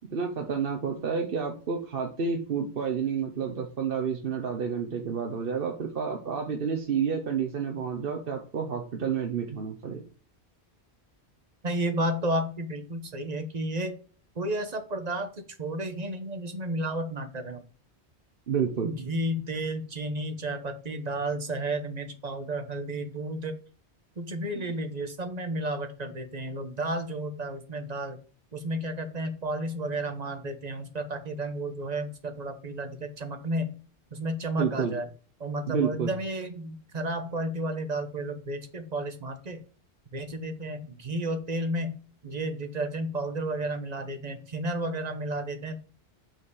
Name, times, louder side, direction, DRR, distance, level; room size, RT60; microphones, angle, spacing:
voice 1, 0.1-10.0 18.5-18.9 24.5-24.6 34.6-35.0 35.7-36.1, right 6 dB, 60° right, 3 dB, 1.1 m, -30 dB
voice 2, 11.6-13.9 14.4-15.3 15.6-17.6 18.8-23.6 24.2-28.2 28.5-33.7 34.1-35.1 35.4-39.6 40.1-42.0 42.2-45.7, right 1 dB, 40° right, 7 dB, 1.1 m, -32 dB
6.2 x 4.6 x 4.8 m, 0.39 s
omnidirectional pair, 1.1 m